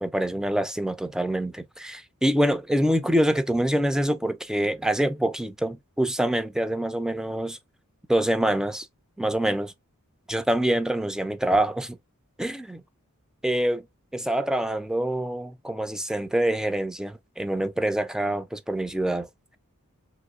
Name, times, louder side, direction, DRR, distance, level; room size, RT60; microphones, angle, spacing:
voice 1, 0.0-7.6 8.1-8.9 9.2-9.7 10.3-12.0 12.4-12.8 13.4-13.8 14.1-19.3, right 1 dB, 5° right, 0.3 m, -25 dB
3.3 x 3.0 x 2.3 m
head